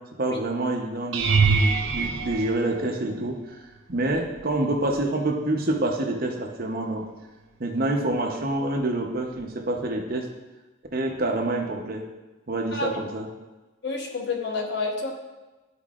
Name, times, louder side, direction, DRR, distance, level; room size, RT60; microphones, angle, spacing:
voice 1, 0.2-3.6 3.9-7.1 7.6-10.3 10.9-12.0 12.5-13.3, right 2 dB, 50° right, 2 dB, 0.9 m, -27 dB
sound 1, 1.1-3.4 4.1-4.5 4.9-5.1 9.4-9.5, right 4 dB, 75° right, 0.5 m, -24 dB
voice 2, 13.8-15.1, left 3 dB, 65° left, 1 dB, 1.0 m, -29 dB
12.0 x 4.7 x 2.5 m, 1.2 s
head